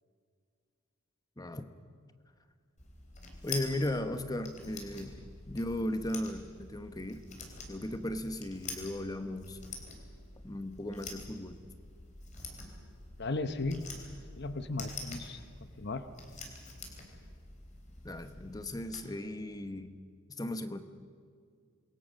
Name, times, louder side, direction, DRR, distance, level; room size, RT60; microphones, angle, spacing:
voice 1, 1.4-1.7 3.4-5.2 5.5-7.2 7.7-9.6 10.4-11.6 18.0-20.0 20.4-20.8, left 1 dB, 15° left, 10 dB, 0.9 m, -36 dB
sound 1, 2.8-19.0, left 3 dB, 35° left, 3.8 m, -47 dB
voice 2, 13.2-13.9 14.4-16.1, left 3 dB, 50° left, 10 dB, 0.9 m, -36 dB
27.0 x 22.0 x 6.5 m, 2.2 s
head